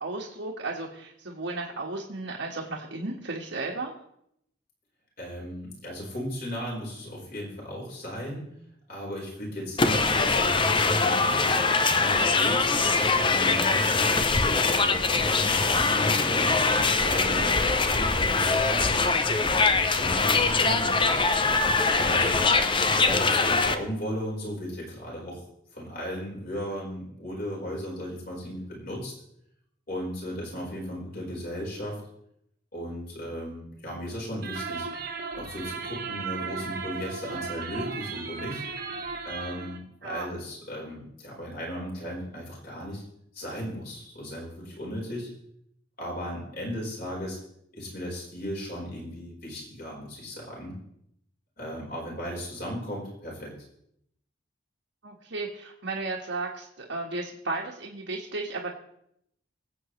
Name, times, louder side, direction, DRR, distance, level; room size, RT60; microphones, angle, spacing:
voice 1, 0.0-3.9 40.0-40.3 55.0-58.7, right 3 dB, 65° right, -4 dB, 1.7 m, -34 dB
voice 2, 5.2-8.4 8.9-12.7 13.2-16.5 16.9-19.0 19.6-21.2 21.9-22.5 23.0-25.4 25.7-29.1 29.9-32.0 32.7-34.9 35.3-38.6 39.2-43.0 43.3-45.3 46.0-47.4 47.7-50.8 51.6-53.5, equal, 45° left, -3 dB, 4.6 m, -36 dB
sound 1, 9.8-23.8, left 4 dB, 25° left, 0.6 m, -23 dB
sound 2, 34.4-39.8, right 5 dB, 50° right, 1.5 m, -36 dB
24.5 x 8.3 x 3.2 m, 0.74 s
head